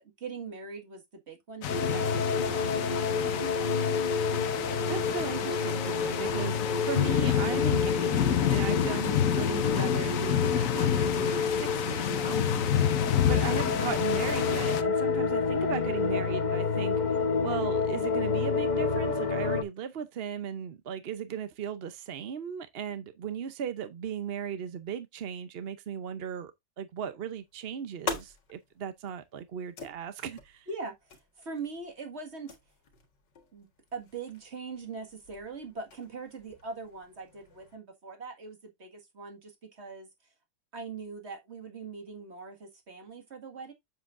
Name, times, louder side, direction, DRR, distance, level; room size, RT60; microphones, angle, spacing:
voice 1, 0.0-3.5 30.7-32.6 33.5-40.1 40.7-43.7, right 4 dB, 40° right, 2.0 m, -42 dB
sound 1, 1.6-14.8, left 10 dB, 55° left, 1.1 m, -29 dB
sound 2, 1.7-19.6, left 5 dB, 40° left, 0.7 m, -29 dB
voice 2, 4.9-12.7 13.2-17.2 17.4-26.5 26.8-30.7, right 8 dB, 60° right, 0.6 m, -37 dB
sound 3, 27.3-37.8, left 4 dB, 75° left, 2.3 m, -45 dB
7.6 x 7.4 x 2.5 m
omnidirectional pair, 1.9 m